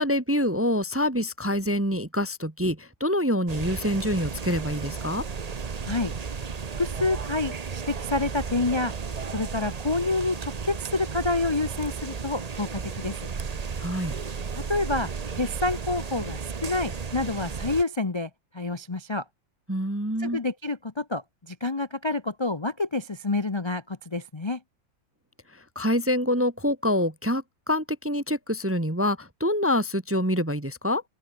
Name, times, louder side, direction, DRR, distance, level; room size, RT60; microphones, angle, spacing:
voice 1, 0.0-5.2 13.8-14.1 19.7-20.4 25.5-31.0, left 1 dB, 15° right, 0.6 m, -26 dB
sound 1, 3.5-17.8, right 5 dB, 85° right, 0.3 m, -34 dB
voice 2, 6.8-8.9 9.3-13.2 14.5-15.1 15.4-19.2 20.2-24.6, left 2 dB, 40° left, 0.4 m, -28 dB
open air
omnidirectional pair, 2.2 m